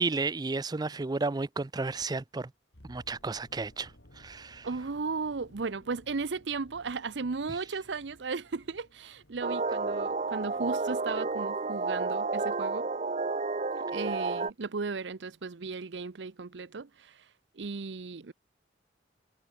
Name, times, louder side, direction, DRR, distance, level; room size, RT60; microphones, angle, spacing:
voice 1, 0.0-2.5 2.8-4.7, right 3 dB, 20° right, 0.4 m, -32 dB
sound 1, 2.7-12.7 13.0-13.2, left 1 dB, 70° left, 4.0 m, -59 dB
voice 2, 4.6-12.9 13.9-17.3 17.5-18.3, right 4 dB, 70° right, 0.7 m, -36 dB
sound 2, 9.4-14.5, right 3 dB, 40° right, 0.8 m, -31 dB
head